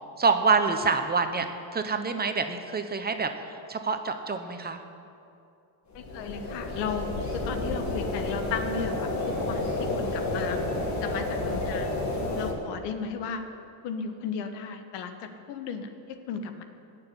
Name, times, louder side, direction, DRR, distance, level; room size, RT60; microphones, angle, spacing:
voice 1, 0.2-1.5 1.7-3.3 3.7-4.8, right 4 dB, 20° right, 7 dB, 1.0 m, -26 dB
voice 2, 5.9-7.1 7.3-10.6 11.0-11.9 12.4-13.4 13.8-16.6, left 6 dB, 90° left, 7 dB, 1.4 m, -35 dB
sound 1, 5.9-12.5, left 2 dB, 45° left, 2.7 m, -30 dB
17.5 x 6.8 x 9.8 m, 2.6 s
cardioid pair, 125°, 42 cm